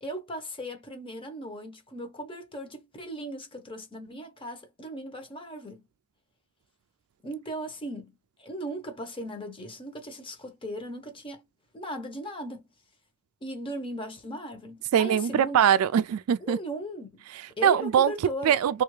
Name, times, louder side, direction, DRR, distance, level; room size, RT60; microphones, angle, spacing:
voice 1, 0.0-5.8 7.2-11.4 11.7-12.7 13.4-15.6 16.4-17.2 17.6-18.6, equal, 25° left, 0.8 m, -37 dB
voice 2, 14.9-16.6 17.4-18.1 18.4-18.8, right 9 dB, 70° right, 0.3 m, -22 dB
3.4 x 2.4 x 3.1 m
head